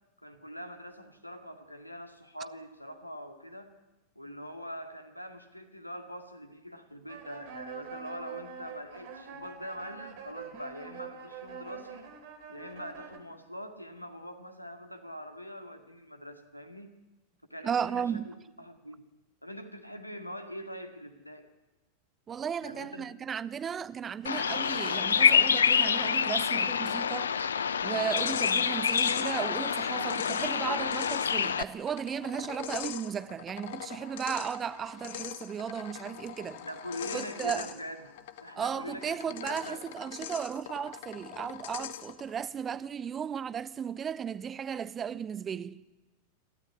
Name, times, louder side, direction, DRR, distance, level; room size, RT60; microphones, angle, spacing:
voice 1, 0.2-3.7 4.2-12.1 12.5-17.0 17.5-19.0 19.4-21.5 22.6-23.1 36.6-38.1 38.4-39.8, equal, 90° left, 2.0 m, -43 dB
sound 1, 7.1-13.2, right 7 dB, 50° right, 3.2 m, -45 dB
voice 2, 17.6-18.3 22.3-27.4 27.8-36.7 37.1-37.7 38.6-45.8, right 8 dB, 25° right, 0.7 m, -35 dB
Bird vocalization bird call bird song, 24.3-31.6, left 7 dB, 70° left, 0.7 m, -27 dB
sound 2, 27.8-42.3, left 12 dB, 55° left, 1.1 m, -42 dB
28.0 x 13.0 x 9.7 m
figure-of-eight pair, 90°, 0 cm